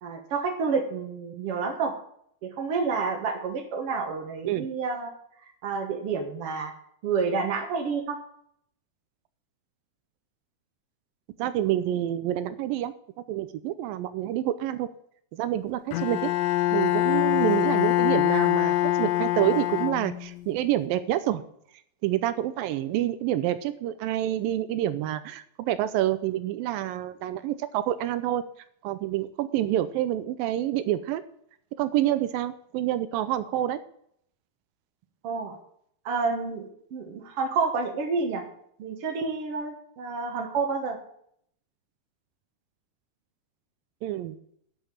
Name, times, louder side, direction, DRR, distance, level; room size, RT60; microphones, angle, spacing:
voice 1, 0.0-1.9 2.4-5.1 5.6-6.7 7.0-8.2 35.2-35.6 36.0-36.7 36.9-38.4 38.8-41.0, right 4 dB, 60° right, 2 dB, 1.6 m, -29 dB
voice 2, 11.4-12.9 13.3-14.9 15.3-16.3 16.7-21.4 22.0-28.4 28.8-31.2 31.8-33.8 44.0-44.4, right 13 dB, 80° right, 13 dB, 2.2 m, -27 dB
Bowed string instrument, 15.9-20.5, left 14 dB, 85° left, 1.9 m, -24 dB
11.5 x 5.8 x 8.7 m, 0.67 s
omnidirectional pair, 4.5 m